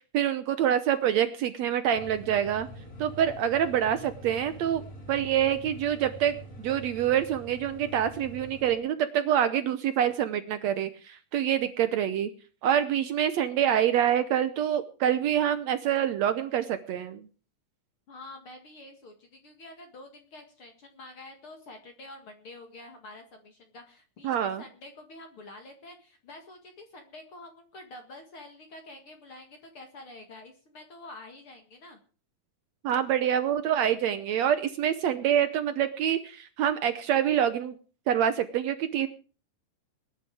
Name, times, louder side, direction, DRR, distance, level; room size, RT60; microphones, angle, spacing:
voice 1, 0.1-2.7 3.0-12.3 12.6-17.3 24.2-24.6 32.8-37.8 38.1-39.1, right 10 dB, 75° right, 11 dB, 1.6 m, -26 dB
sound 1, 1.9-8.8, equal, 25° left, 2.5 m, -45 dB
voice 2, 18.1-32.0, left 2 dB, 45° left, 5 dB, 2.3 m, -47 dB
20.0 x 11.0 x 4.8 m, 0.37 s
omnidirectional pair, 4.2 m